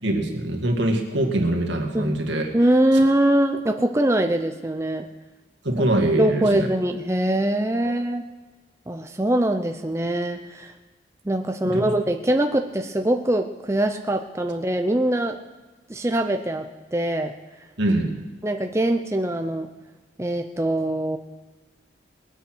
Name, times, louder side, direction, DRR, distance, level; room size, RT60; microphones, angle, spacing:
voice 1, 0.0-2.5 5.6-6.7 7.8-7.9 11.6-11.9 17.8-18.2, right 1 dB, 80° right, 2 dB, 2.2 m, -23 dB
voice 2, 2.5-5.1 6.2-8.2 8.9-10.7 11.3-15.4 15.9-17.3 18.4-19.7 20.2-21.2, right 1 dB, 15° right, 5 dB, 0.6 m, -23 dB
21.0 x 8.5 x 6.1 m, 1.2 s
head